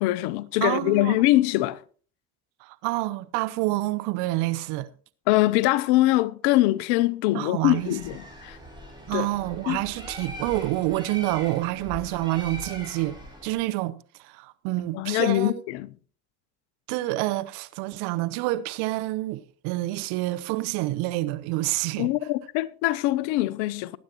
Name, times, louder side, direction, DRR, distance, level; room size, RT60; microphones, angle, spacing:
voice 1, 0.0-1.8 5.3-8.6 9.1-9.3 9.7-9.8 14.9-15.9 22.0-24.0, left 17 dB, 75° left, 0.7 m, -23 dB
voice 2, 0.6-1.2 2.6-4.9 7.3-7.9 9.1-15.6 16.9-22.1, right 18 dB, 75° right, 0.8 m, -28 dB
Bird, 7.6-13.6, equal, 10° right, 6.7 m, -41 dB
18.5 x 9.4 x 3.0 m
hypercardioid pair, 55°, 40 cm